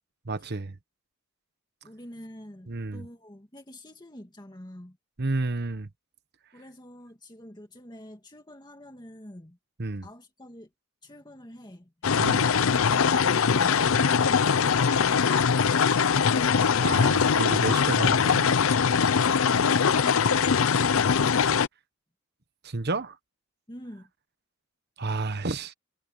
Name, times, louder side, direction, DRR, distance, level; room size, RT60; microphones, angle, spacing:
voice 1, 0.2-0.8 2.7-3.1 5.2-5.9 9.8-10.1 12.2-12.5 16.8-18.5 22.6-23.2 25.0-25.7, right 3 dB, 50° right, 1.2 m, -30 dB
voice 2, 1.8-5.0 6.5-9.6 10.0-10.7 11.0-15.9 19.1-21.6 23.7-24.1, left 1 dB, 20° left, 1.9 m, -47 dB
sound 1, 12.0-21.7, left 6 dB, 70° left, 0.6 m, -22 dB
head